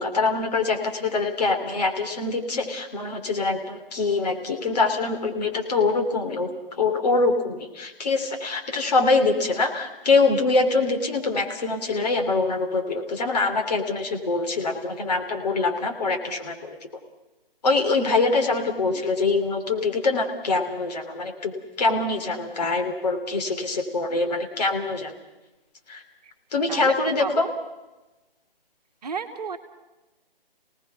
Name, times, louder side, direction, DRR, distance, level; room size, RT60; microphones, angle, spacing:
voice 1, 0.0-6.5 6.8-16.8 17.6-21.5 21.8-25.1 25.9-26.0 26.5-27.5, left 3 dB, 45° left, 3 dB, 3.2 m, -24 dB
voice 2, 26.7-27.5 29.0-29.6, right 5 dB, 45° right, 6 dB, 1.7 m, -33 dB
29.0 x 18.5 x 5.9 m, 1.1 s
figure-of-eight pair, 150°, 29 cm